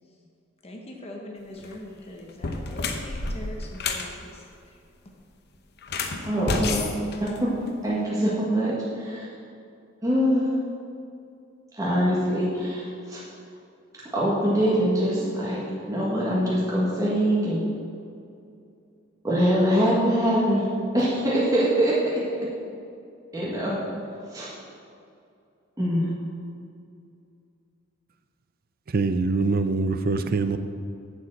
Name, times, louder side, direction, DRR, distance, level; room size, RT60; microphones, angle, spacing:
voice 1, 0.6-4.4, left 1 dB, 30° left, 1.0 m, -41 dB
sound 1, 1.5-1.8 2.3-4.1 5.8-7.9, left 3 dB, 55° left, 0.8 m, -30 dB
voice 2, 6.3-7.5 7.8-9.3 10.0-10.5 11.7-13.2 14.1-17.6 19.2-20.7 20.9-21.9 23.3-23.7 24.3-24.5 25.8-26.1, equal, 15° right, 1.6 m, -23 dB
voice 3, 28.9-30.6, right 3 dB, 50° right, 0.5 m, -24 dB
7.5 x 6.4 x 7.7 m
head